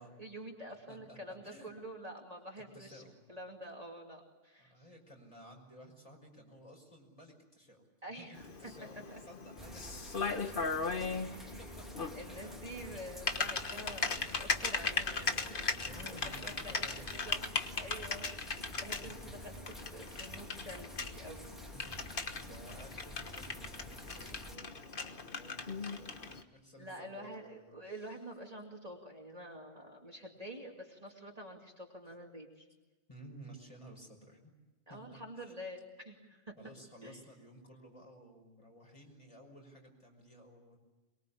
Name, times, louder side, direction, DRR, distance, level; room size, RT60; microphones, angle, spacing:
voice 1, 0.0-3.0 3.3-4.9 8.0-8.7 9.1-9.2 11.0-11.6 12.1-15.7 16.1-16.9 17.1-18.3 18.8-21.6 26.8-32.7 34.9-36.6 37.0-37.2, right 1 dB, 30° right, -1 dB, 2.7 m, -48 dB
voice 2, 2.7-3.2 4.6-7.9 8.1-8.3 8.6-11.0 11.3-11.4 11.8-11.9 12.2-13.0 15.8-17.5 19.0-19.3 21.7-22.1 22.4-28.2 33.1-34.5 34.9-35.5 36.6-40.8, right 1 dB, 30° left, 1 dB, 5.6 m, -55 dB
Typing, 8.3-26.4, left 4 dB, 50° left, 1.4 m, -38 dB
sound 1, 9.6-24.6, equal, ahead, 2.6 m, -50 dB
23.5 x 22.5 x 8.5 m, 1.1 s
omnidirectional pair, 1.2 m